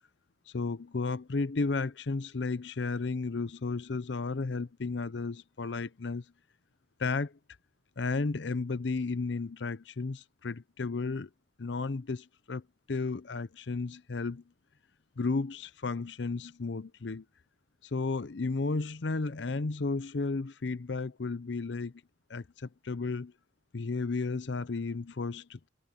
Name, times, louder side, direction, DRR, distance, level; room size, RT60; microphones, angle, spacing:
voice 1, 0.5-6.2 7.0-7.4 8.0-11.3 11.6-12.6 12.9-14.4 15.2-17.2 17.9-21.9 22.3-23.3 23.7-25.7, left 3 dB, 70° left, 0.7 m, -33 dB
head